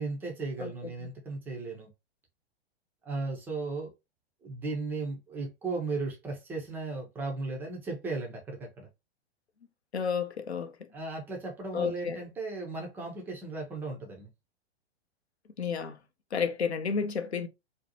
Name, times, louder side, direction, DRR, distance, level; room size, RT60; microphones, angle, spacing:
voice 1, 0.0-1.9 3.1-3.9 4.4-8.9 10.9-14.3, right 3 dB, 5° right, 0.3 m, -36 dB
voice 2, 9.9-10.7 11.7-12.2 15.6-16.0 16.3-17.5, left 6 dB, 90° left, 0.5 m, -31 dB
2.6 x 2.0 x 2.6 m
figure-of-eight pair, 105°, 31 cm